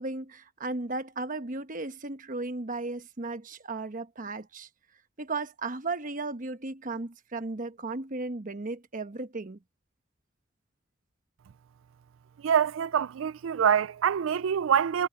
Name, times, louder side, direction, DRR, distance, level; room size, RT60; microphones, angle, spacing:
voice 1, 0.0-4.7 5.2-9.6, right 3 dB, 45° right, 1.1 m, -35 dB
voice 2, 12.4-15.1, right 8 dB, 80° right, 0.4 m, -25 dB
head